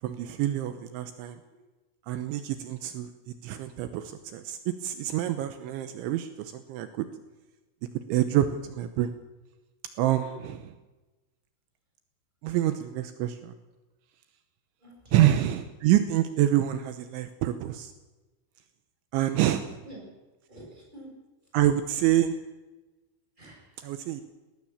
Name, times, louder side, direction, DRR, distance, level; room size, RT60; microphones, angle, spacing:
voice 1, 0.0-1.4 2.1-3.1 3.4-7.1 8.1-9.1 10.0-10.7 12.4-13.6 15.1-17.9 19.1-19.8 21.5-22.3 23.8-24.2, right 12 dB, 80° right, 9 dB, 3.3 m, -27 dB
voice 2, 14.8-15.3 19.8-20.0 20.5-21.1 23.4-23.8, right 2 dB, 10° right, -1 dB, 7.0 m, -44 dB
19.5 x 19.5 x 7.2 m, 1.1 s
omnidirectional pair, 5.5 m